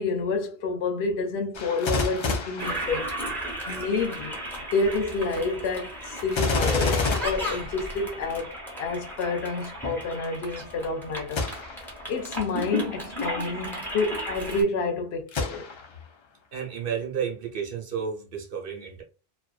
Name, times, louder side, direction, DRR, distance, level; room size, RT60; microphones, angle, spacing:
voice 1, 0.0-3.1 3.7-11.5 12.1-15.7, left 3 dB, 90° left, 0.9 m, -29 dB
Gunshot gunfire, 1.5-3.5 6.3-8.4 11.3-11.9 12.6-12.7 15.3-16.1 16.6-16.7, left 3 dB, 50° left, 0.3 m, -29 dB
Toilet flush, 2.6-14.6, equal, ahead, 0.8 m, -34 dB
voice 2, 16.5-19.0, right 7 dB, 60° right, 0.9 m, -32 dB
2.5 x 2.2 x 2.3 m
omnidirectional pair, 1.0 m